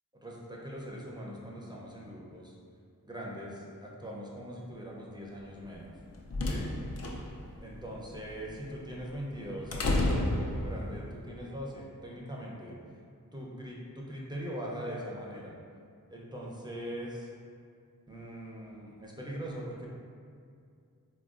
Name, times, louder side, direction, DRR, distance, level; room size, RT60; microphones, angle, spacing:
voice 1, 0.2-2.6 3.0-5.9 6.4-6.6 7.6-12.7 13.3-15.5 16.1-17.3 18.1-19.9, equal, 10° right, -4 dB, 0.5 m, -41 dB
sound 1, 5.8-11.1, left 1 dB, 45° left, 0.4 m, -32 dB
3.5 x 2.3 x 2.4 m, 2.3 s
wide cardioid pair, 55°, 35 cm